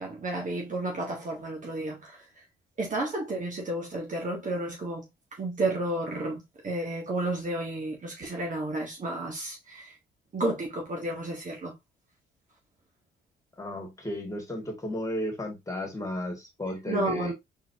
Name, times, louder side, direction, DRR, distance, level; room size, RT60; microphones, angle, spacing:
voice 1, 0.0-2.4 2.8-5.1 5.3-10.0 10.3-11.7 16.9-17.3, right 2 dB, 40° right, 1.5 m, -32 dB
voice 2, 13.6-17.3, left 1 dB, 15° left, 2.3 m, -34 dB
4.0 x 3.9 x 2.8 m
cardioid pair, 90°, 20 cm